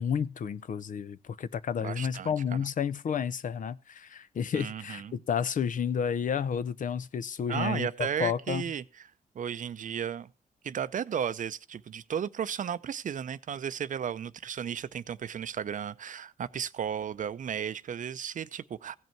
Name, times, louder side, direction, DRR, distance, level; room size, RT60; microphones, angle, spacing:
voice 1, 0.0-8.6, left 7 dB, 55° left, 0.6 m, -31 dB
voice 2, 1.8-2.7 4.5-5.2 7.5-9.1 9.3-10.3 10.6-19.0, right 8 dB, 55° right, 0.6 m, -34 dB
16.0 x 5.4 x 4.5 m
cardioid pair, 60°, 16 cm